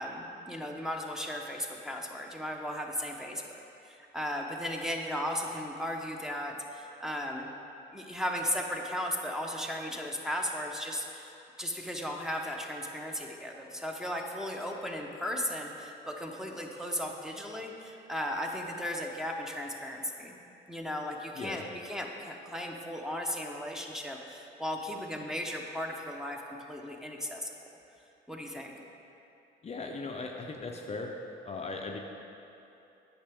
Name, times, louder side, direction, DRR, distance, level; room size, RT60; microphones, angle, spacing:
voice 1, 0.0-3.4 3.8-7.5 7.9-11.3 11.6-20.4 20.7-26.4 26.7-27.5 28.3-28.7, equal, 5° right, 0 dB, 0.7 m, -36 dB
voice 2, 29.6-31.2 31.5-32.0, left 3 dB, 30° left, 1 dB, 0.5 m, -38 dB
8.7 x 5.9 x 3.5 m, 2.9 s
cardioid pair, 90°, 20 cm